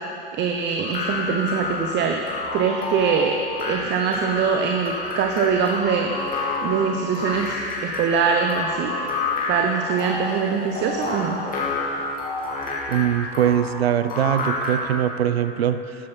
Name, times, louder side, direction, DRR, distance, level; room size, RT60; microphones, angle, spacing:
voice 1, 0.3-2.2 2.5-3.3 3.7-6.1 6.6-8.9 9.5-11.4, right 6 dB, 35° right, 3 dB, 0.9 m, -23 dB
sound 1, 0.8-15.0, left 3 dB, 30° left, 2.7 m, -29 dB
voice 2, 12.9-16.0, right 10 dB, 80° right, 12 dB, 0.6 m, -22 dB
14.0 x 9.7 x 4.2 m, 2.9 s
hypercardioid pair, 85°, 30 cm